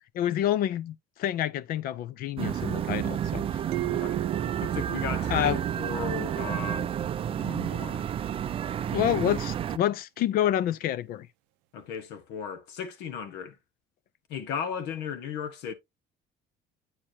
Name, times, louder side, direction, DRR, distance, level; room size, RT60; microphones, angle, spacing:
voice 1, 0.1-3.6 5.3-5.6 8.9-11.3, left 11 dB, 55° left, 0.6 m, -28 dB
sound 1, 2.4-9.8, right 9 dB, 30° right, 0.4 m, -30 dB
sound 2, 3.7-6.3, right 20 dB, 85° right, 0.5 m, -36 dB
voice 2, 3.8-4.2 4.6-6.9 7.3-8.1 8.9-9.2 11.7-13.6 14.3-15.7, left 7 dB, 75° left, 1.4 m, -36 dB
8.7 x 4.6 x 2.8 m
cardioid pair, 140°, 18 cm